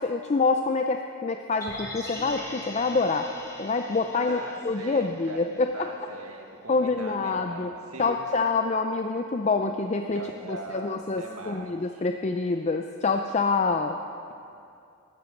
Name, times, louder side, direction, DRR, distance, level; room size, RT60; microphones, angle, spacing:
voice 1, 0.0-3.3 3.6-4.4 4.6-5.9 6.7-7.7 8.0-10.2 10.5-14.0, left 4 dB, 30° left, 5 dB, 0.4 m, -26 dB
sound 1, 1.6-5.8 6.1-6.2, left 1 dB, 15° left, 1.4 m, -41 dB
voice 2, 4.3-8.2 10.1-12.0, right 2 dB, 85° right, 2 dB, 1.7 m, -41 dB
14.5 x 13.0 x 5.2 m, 2.5 s
head